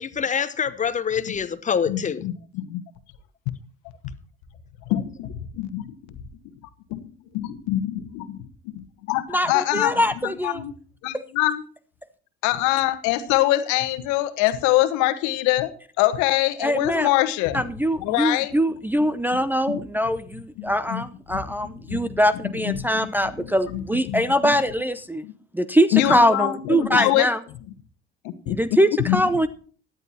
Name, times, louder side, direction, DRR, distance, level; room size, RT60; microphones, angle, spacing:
voice 1, 0.0-2.3, left 7 dB, 25° left, 0.9 m, -25 dB
voice 2, 1.9-2.8 4.9-6.2 6.9-10.7 11.0-11.6 12.4-17.6 18.0-18.5 19.0-19.4 19.7-19.8 20.6-21.0 21.3-22.1 22.4-24.6 25.2-25.3 25.9-27.3 28.2-29.2, left 15 dB, 60° left, 1.2 m, -25 dB
voice 3, 9.3-10.6 11.1-11.2 16.6-17.1 17.5-25.2 25.5-27.4 28.5-29.5, equal, 5° right, 0.6 m, -22 dB
17.5 x 11.0 x 2.9 m
figure-of-eight pair, 60°, 32 cm